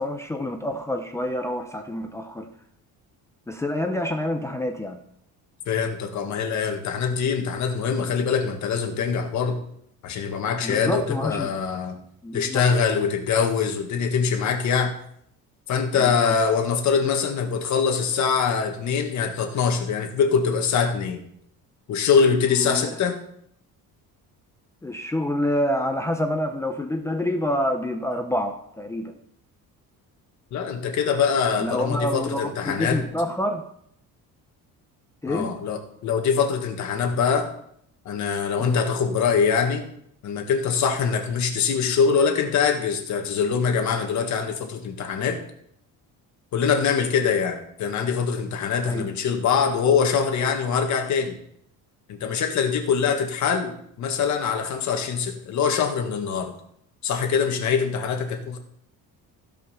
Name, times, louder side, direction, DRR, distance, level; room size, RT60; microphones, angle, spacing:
voice 1, 0.0-2.5 3.5-5.0 10.6-11.5 12.2-12.6 16.0-16.3 22.5-22.9 24.8-29.1 31.6-33.6 35.2-35.5 38.6-38.8 48.8-49.1, left 1 dB, 10° left, 4 dB, 0.6 m, -27 dB
voice 2, 5.7-9.6 10.0-12.0 12.3-15.0 15.7-21.2 21.9-23.2 30.5-33.0 35.3-37.5 38.1-39.9 40.2-45.4 46.5-51.4 52.1-56.5 57.0-58.6, left 6 dB, 50° left, 4 dB, 1.8 m, -23 dB
16.0 x 5.5 x 5.8 m, 0.70 s
cardioid pair, 175°, 36 cm